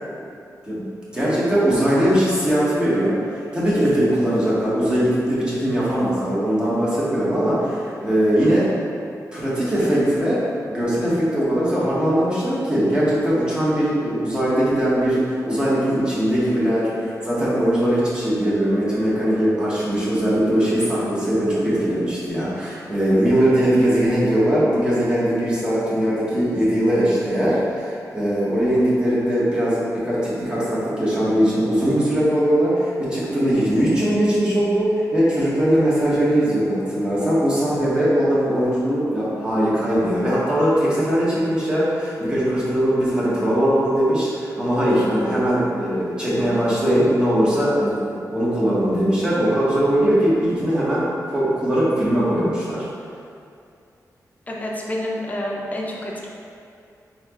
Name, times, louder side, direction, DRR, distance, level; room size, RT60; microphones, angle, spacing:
voice 1, 1.1-8.7 9.3-52.9, equal, 15° right, -8 dB, 1.1 m, -20 dB
voice 2, 54.5-56.3, left 1 dB, 25° left, -3 dB, 0.6 m, -28 dB
4.2 x 3.9 x 2.9 m, 2.4 s
wide cardioid pair, 140°, 6 cm